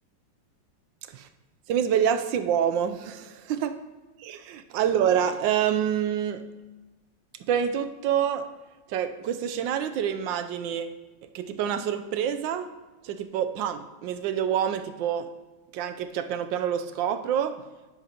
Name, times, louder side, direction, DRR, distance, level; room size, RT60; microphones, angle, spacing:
voice 1, 1.7-3.7 4.2-6.4 7.5-8.5 8.9-10.9 11.2-12.7 13.0-15.3 15.7-17.6, right 9 dB, 85° right, 10 dB, 1.3 m, -27 dB
10.0 x 9.1 x 2.9 m, 1.2 s
omnidirectional pair, 2.0 m